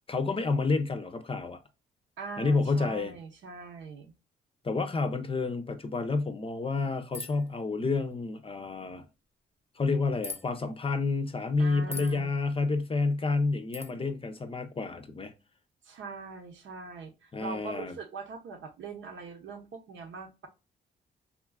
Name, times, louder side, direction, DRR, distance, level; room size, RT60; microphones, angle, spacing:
voice 1, 0.1-1.6 2.4-3.1 4.6-9.0 9.8-15.3 17.3-17.9, left 3 dB, 30° left, 0.6 m, -29 dB
voice 2, 2.2-4.1 11.6-12.3 15.8-20.5, right 4 dB, 75° right, 0.9 m, -42 dB
sound 1, 7.1-7.5 10.2-10.4 11.9-12.2 13.7-13.9, left 2 dB, 10° right, 0.7 m, -39 dB
3.7 x 2.4 x 2.2 m
cardioid pair, 75°, 20 cm